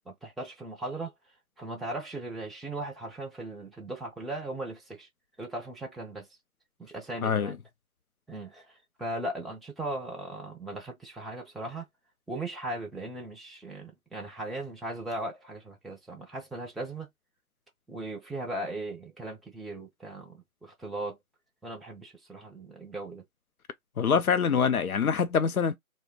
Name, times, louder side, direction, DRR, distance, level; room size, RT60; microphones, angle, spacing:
voice 1, 0.1-1.1 1.6-5.1 5.4-6.3 6.8-7.6 8.3-8.7 9.0-11.8 12.3-17.1 17.9-21.2 21.6-23.2, right 2 dB, ahead, 0.5 m, -38 dB
voice 2, 7.2-7.5 24.0-25.8, left 6 dB, 75° left, 0.6 m, -25 dB
2.5 x 2.1 x 3.7 m
figure-of-eight pair, 175°, 43 cm